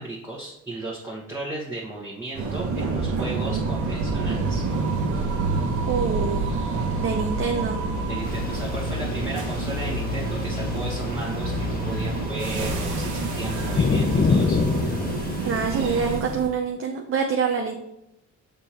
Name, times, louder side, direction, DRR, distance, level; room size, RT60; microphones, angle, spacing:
voice 1, 0.0-4.6 8.1-14.6, right 2 dB, 10° right, -5 dB, 1.3 m, -35 dB
sound 1, 2.3-16.5, right 3 dB, 80° right, 1.2 m, -27 dB
voice 2, 5.9-6.4 7.0-7.8 15.4-17.8, right 6 dB, 45° right, 3 dB, 0.7 m, -25 dB
sound 2, 8.3-16.2, left 5 dB, 30° left, 0.6 m, -28 dB
6.6 x 3.6 x 4.4 m, 0.84 s
cardioid pair, 90°, 30 cm